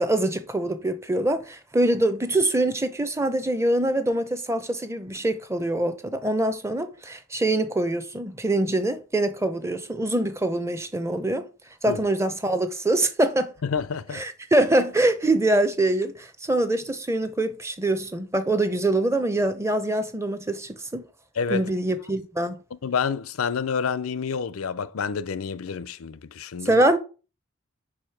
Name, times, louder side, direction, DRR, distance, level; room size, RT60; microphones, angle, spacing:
voice 1, 0.0-11.5 11.8-13.5 14.1-21.0 21.5-22.6 26.6-27.0, right 1 dB, 15° right, 0.6 m, -24 dB
voice 2, 13.6-14.2 21.4-21.7 22.8-26.8, left 6 dB, 85° left, 0.5 m, -28 dB
5.0 x 4.9 x 5.8 m
head